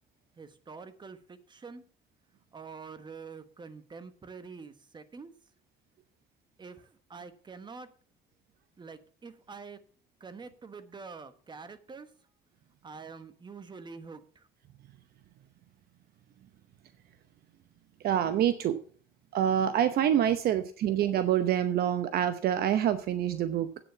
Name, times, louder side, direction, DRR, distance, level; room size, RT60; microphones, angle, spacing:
voice 1, 0.4-1.8 2.5-5.3 6.6-6.8 7.1-7.9 8.8-9.8 10.2-12.1 12.8-14.2, right 5 dB, 25° right, 11 dB, 1.3 m, -46 dB
voice 2, 18.0-18.8 19.3-23.8, right 10 dB, 65° right, 11 dB, 0.9 m, -26 dB
8.9 x 7.0 x 6.9 m, 0.43 s
cardioid pair, 110°, 17 cm